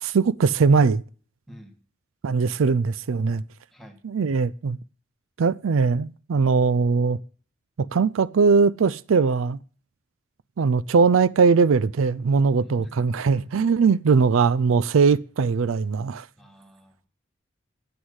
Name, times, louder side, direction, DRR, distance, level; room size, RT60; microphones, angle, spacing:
voice 1, 0.0-1.0 2.2-3.4 4.0-4.8 5.4-7.2 7.8-9.6 10.6-16.3, right 5 dB, 85° right, 0.4 m, -20 dB
voice 2, 1.5-1.8 3.7-4.0 12.6-13.2 16.4-17.0, equal, ahead, 1.8 m, -48 dB
9.6 x 7.9 x 8.0 m
head